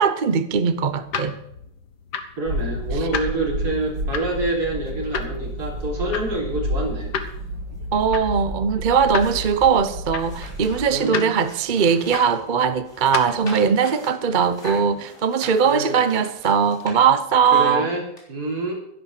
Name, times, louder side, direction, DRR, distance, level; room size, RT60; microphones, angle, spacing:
voice 1, 0.0-1.3 7.9-17.9, right 6 dB, 45° right, 0.7 m, -20 dB
sound 1, 0.6-13.5, left 6 dB, 75° left, 1.8 m, -35 dB
voice 2, 2.4-7.1 10.9-11.3 15.6-16.1 17.5-18.7, right 2 dB, 65° right, 3.8 m, -27 dB
sound 2, 2.4-10.8, equal, 85° right, 2.4 m, -30 dB
sound 3, 8.9-12.4 12.8-17.5 18.2-18.3, left 1 dB, 40° left, 4.1 m, -42 dB
12.5 x 11.0 x 6.5 m
omnidirectional pair, 1.8 m